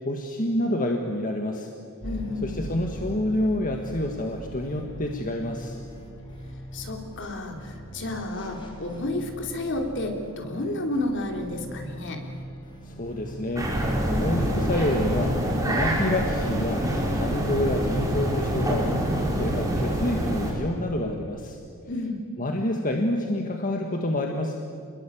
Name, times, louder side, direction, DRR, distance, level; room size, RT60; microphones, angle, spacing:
voice 1, 0.0-1.7 2.4-5.8 12.9-13.7 14.0-15.3 15.6-16.8 17.1-18.9 19.4-21.6 22.4-24.6, left 1 dB, 40° left, 2 dB, 1.8 m, -28 dB
voice 2, 2.0-2.5 6.7-12.2 21.9-22.2, left 2 dB, 60° left, 3 dB, 3.5 m, -31 dB
sound 1, 2.0-13.9, equal, 20° left, 4.3 m, -40 dB
sound 2, 13.6-20.5, right 1 dB, 15° right, 5.4 m, -26 dB
29.0 x 21.5 x 8.7 m, 2.4 s
head